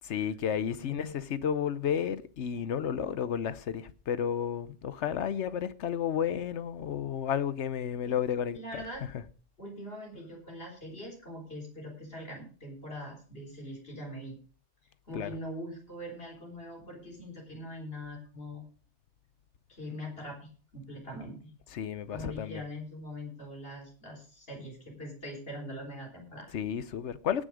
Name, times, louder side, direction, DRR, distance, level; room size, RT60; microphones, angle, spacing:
voice 1, 0.0-8.8 15.1-15.3 21.7-22.6 26.5-27.4, left 8 dB, 75° left, 1.1 m, -32 dB
voice 2, 0.8-1.2 8.0-8.2 8.5-9.0 9.6-14.4 15.1-18.6 19.7-21.5 22.1-26.5, equal, 55° left, 4.2 m, -42 dB
18.5 x 6.4 x 4.9 m
omnidirectional pair, 1.2 m